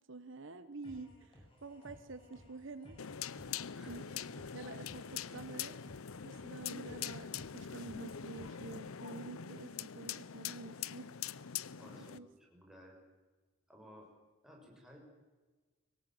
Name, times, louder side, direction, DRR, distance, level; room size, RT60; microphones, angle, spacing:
voice 1, 0.0-3.0 3.9-4.2 4.5-5.8 6.2-11.1 12.1-12.3, right 3 dB, 60° right, 11 dB, 1.1 m, -48 dB
sound 1, 0.8-8.8, equal, 25° left, 6.6 m, -58 dB
sound 2, 3.0-12.2, left 8 dB, 90° left, 0.7 m, -43 dB
voice 2, 11.8-13.0 13.7-14.1 14.4-15.0, equal, ahead, -1 dB, 6.3 m, -56 dB
24.0 x 19.0 x 7.7 m, 1.3 s
head